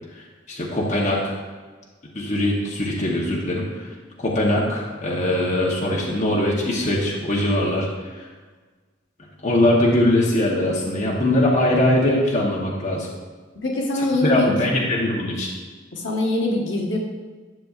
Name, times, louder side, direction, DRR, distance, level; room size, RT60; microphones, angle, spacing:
voice 1, 0.5-1.3 2.1-3.9 4.2-7.9 8.2-8.3 9.4-13.1 14.2-15.5, left 1 dB, 35° left, -4 dB, 1.0 m, -21 dB
voice 2, 13.5-14.7 15.9-17.0, left 2 dB, 70° left, -1 dB, 1.3 m, -23 dB
11.0 x 6.6 x 2.4 m, 1.4 s
head